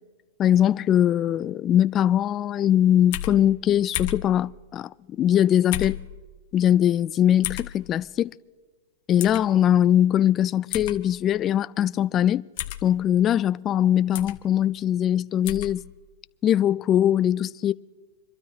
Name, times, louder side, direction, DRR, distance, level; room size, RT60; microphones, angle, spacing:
voice 1, 0.4-6.0 6.5-8.3 9.1-12.5 12.8-15.8 16.4-17.7, left 10 dB, 25° left, 0.4 m, -21 dB
sound 1, 3.1-3.4 3.9-4.3 5.7-6.0 7.4-7.7 9.2-9.4 10.7-11.0 12.6-12.8 14.1-14.4 15.4-15.7, left 15 dB, 50° left, 1.3 m, -31 dB
28.0 x 12.5 x 2.8 m
hypercardioid pair, 140°, 0 cm